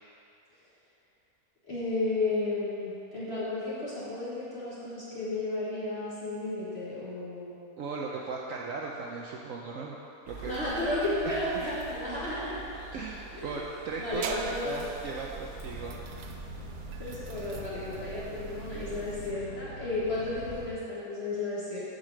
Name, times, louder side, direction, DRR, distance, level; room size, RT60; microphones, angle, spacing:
voice 1, 1.7-7.6 10.5-12.6 13.3-13.6 14.0-14.8 17.0-21.8, left 2 dB, 40° left, -10 dB, 2.1 m, -33 dB
voice 2, 7.8-10.0 10.3-10.6 11.2-11.7 12.9-16.0, right 4 dB, 65° right, -2 dB, 1.0 m, -37 dB
sound 1, 10.3-15.9, right 5 dB, 20° left, 2.0 m, -46 dB
sound 2, 14.1-19.3, right 5 dB, 85° right, 1.2 m, -42 dB
sound 3, 15.5-20.7, left 2 dB, 45° right, 2.2 m, -44 dB
8.1 x 5.0 x 7.4 m, 2.6 s
omnidirectional pair, 1.7 m